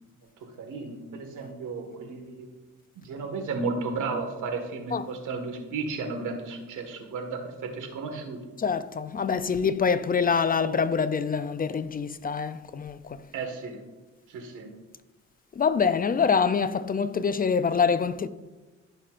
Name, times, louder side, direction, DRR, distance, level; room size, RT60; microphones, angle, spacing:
voice 1, 0.6-2.5 2.9-8.4 13.3-13.8 14.3-14.7, right 4 dB, 80° right, 1.7 m, -33 dB
voice 2, 8.6-13.2 15.5-18.3, left 6 dB, 30° left, 0.4 m, -25 dB
14.5 x 5.7 x 2.5 m
cardioid pair, 90°, 30 cm